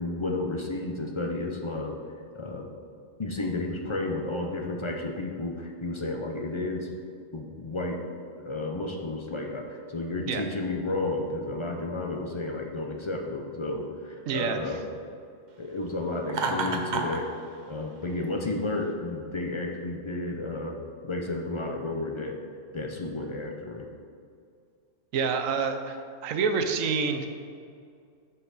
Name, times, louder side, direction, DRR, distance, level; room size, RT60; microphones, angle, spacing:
voice 1, 0.0-2.0 2.4-2.7 3.2-6.9 7.3-8.0 8.4-14.8 15.6-17.3 17.7-20.8 21.0-22.4 22.7-23.9, left 2 dB, 40° left, 2 dB, 0.4 m, -32 dB
voice 2, 14.3-14.7 25.1-27.3, right 5 dB, 90° right, 6 dB, 1.1 m, -28 dB
Laughter, 16.3-17.2, right 4 dB, 50° right, 0.6 m, -28 dB
7.6 x 5.8 x 4.0 m, 2.3 s
omnidirectional pair, 1.3 m